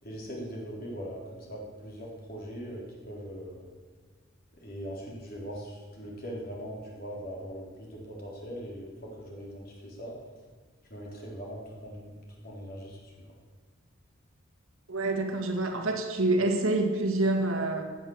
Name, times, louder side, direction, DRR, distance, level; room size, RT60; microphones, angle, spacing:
voice 1, 0.0-3.6 4.5-10.1 10.9-13.3, equal, 45° left, -3 dB, 3.9 m, -41 dB
voice 2, 14.9-17.8, right 2 dB, 75° right, 3 dB, 2.1 m, -27 dB
16.0 x 9.1 x 7.3 m, 1.5 s
head